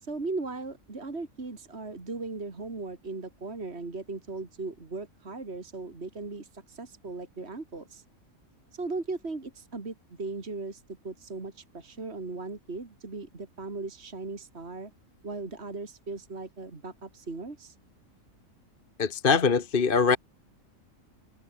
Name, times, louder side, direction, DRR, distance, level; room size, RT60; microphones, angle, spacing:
voice 1, 0.0-8.0 8.7-14.9 15.2-17.7, right 3 dB, 50° right, 3.0 m, -38 dB
voice 2, 19.0-20.2, left 5 dB, 40° left, 1.3 m, -22 dB
omnidirectional pair, 1.4 m